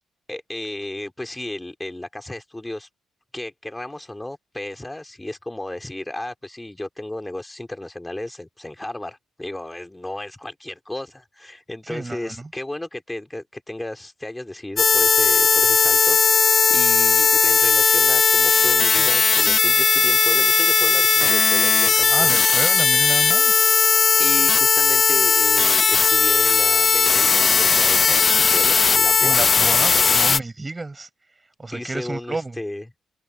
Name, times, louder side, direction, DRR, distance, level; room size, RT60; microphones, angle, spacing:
voice 1, 0.3-2.9 3.3-22.3 22.6-22.8 24.2-29.4 29.7-30.2 31.7-32.9, left 1 dB, 10° left, 3.4 m, -34 dB
voice 2, 11.9-12.5 22.1-23.7 29.2-31.1 31.6-32.6, right 3 dB, 20° right, 5.4 m, -30 dB
sound 1, 14.8-30.4, left 5 dB, 35° left, 0.6 m, -17 dB
cardioid pair, 90°, 0 cm